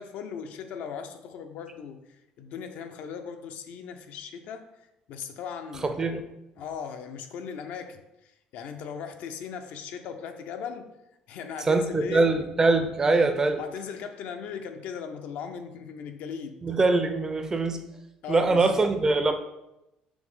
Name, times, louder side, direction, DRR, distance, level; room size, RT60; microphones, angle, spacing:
voice 1, 0.0-6.1 6.6-10.9 11.3-12.3 13.6-16.6 17.9-18.8, left 7 dB, 70° left, 7 dB, 0.5 m, -38 dB
voice 2, 5.8-6.2 11.7-13.6 16.6-17.8 18.3-19.4, right 3 dB, 20° right, 7 dB, 0.4 m, -23 dB
5.9 x 2.1 x 3.5 m, 0.88 s
cardioid pair, 125°, 3 cm